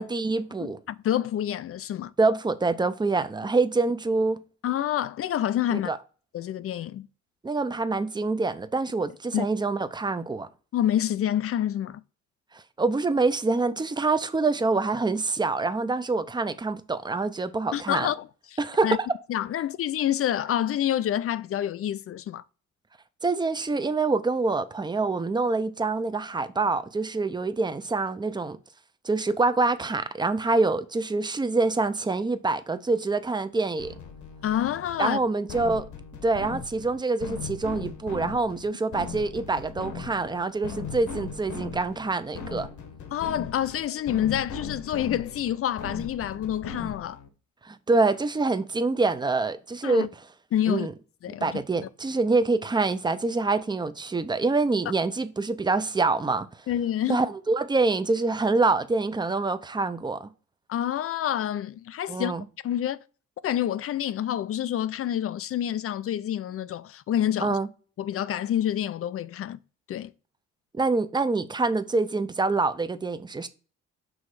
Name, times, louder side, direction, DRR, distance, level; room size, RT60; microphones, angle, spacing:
voice 1, 0.0-0.8 2.2-4.4 5.7-6.0 7.4-10.5 12.5-18.1 18.6-19.1 23.2-28.6 29.0-33.9 35.0-35.9 36.2-42.7 47.6-50.1 50.7-50.9 51.4-56.5 57.1-60.3 62.1-62.4 67.4-67.7 70.7-73.5, right 3 dB, 15° right, 0.5 m, -26 dB
voice 2, 0.6-2.1 4.6-5.9 6.3-7.1 9.3-9.5 10.7-12.0 17.7-18.6 18.8-19.0 19.3-22.4 34.4-35.2 43.1-47.2 49.8-50.1 50.5-50.9 51.2-51.6 56.7-57.2 60.7-62.3 62.6-63.0 63.4-67.6 68.0-69.6 69.9-70.1, left 11 dB, 50° left, 0.4 m, -28 dB
sound 1, 33.8-47.3, left 5 dB, 70° left, 1.3 m, -39 dB
6.2 x 3.1 x 4.8 m
cardioid pair, 90°, 30 cm